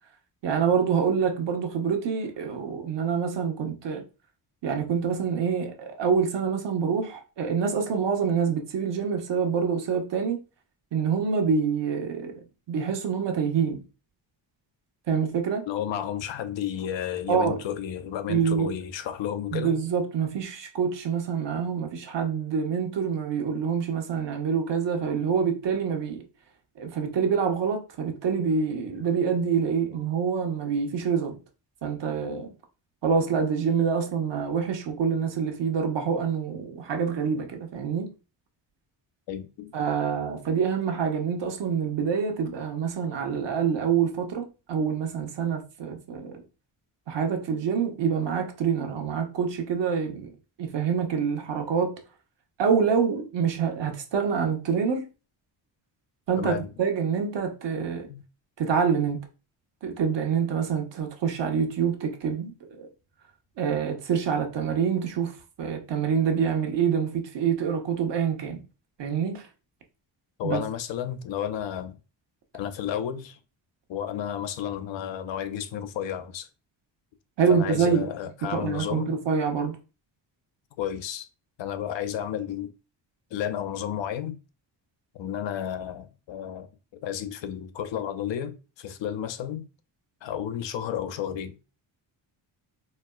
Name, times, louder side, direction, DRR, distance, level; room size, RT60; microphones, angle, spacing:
voice 1, 0.4-4.0 4.6-10.4 10.9-12.4 12.7-13.8 15.1-15.7 17.3-17.6 18.3-18.7 19.5-26.2 26.8-31.4 31.8-32.5 33.0-38.1 39.7-46.4 47.1-50.3 50.6-51.9 52.6-55.1 56.3-58.1 58.6-59.2 59.8-62.9 63.6-68.6 69.0-69.4 70.4-70.6 77.4-78.1 78.4-79.8, right 6 dB, 60° right, 0.9 m, -26 dB
voice 2, 15.7-19.7 39.3-39.7 56.4-56.7 58.1-58.2 70.4-72.0 72.5-73.4 73.9-76.5 77.5-79.2 80.8-81.3 81.6-82.7 83.3-84.4 85.1-86.7 86.9-89.7 90.2-91.6, left 10 dB, 70° left, 0.6 m, -32 dB
4.2 x 2.1 x 2.2 m
cardioid pair, 75°, 47 cm